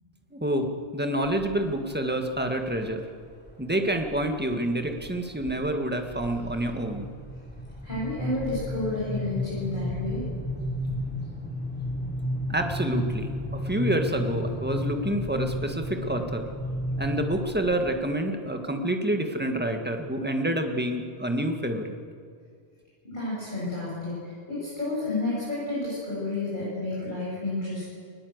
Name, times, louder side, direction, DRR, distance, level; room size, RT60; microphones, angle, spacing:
voice 1, 0.3-3.0 3.6-7.1 12.5-16.4 17.0-22.0, right 1 dB, 10° right, 4 dB, 1.7 m, -28 dB
sound 1, 1.2-1.8 2.3-2.8 3.5-4.3 4.7-5.1 5.4-18.0, left 1 dB, 10° left, 3.0 m, -33 dB
voice 2, 7.8-10.2 23.0-27.8, left 2 dB, 45° left, -8 dB, 7.9 m, -31 dB
20.0 x 18.0 x 8.0 m, 2.1 s
omnidirectional pair, 1.1 m